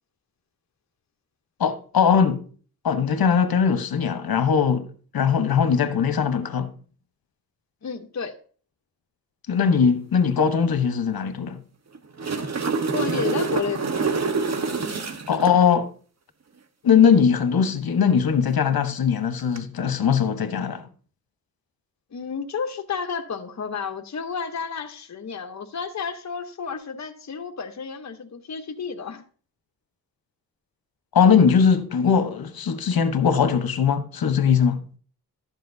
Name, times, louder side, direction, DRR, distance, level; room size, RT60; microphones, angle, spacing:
voice 1, 1.6-2.5 2.8-6.7 9.5-11.6 15.3-15.9 16.8-20.9 31.1-34.8, left 7 dB, 75° left, 1.0 m, -20 dB
voice 2, 7.8-8.4 12.9-14.1 22.1-29.2, left 6 dB, 50° left, 0.9 m, -31 dB
sound 1, 11.9-15.6 19.4-19.6, right 4 dB, 45° right, 1.1 m, -26 dB
12.0 x 7.6 x 2.7 m
cardioid pair, 65°, 37 cm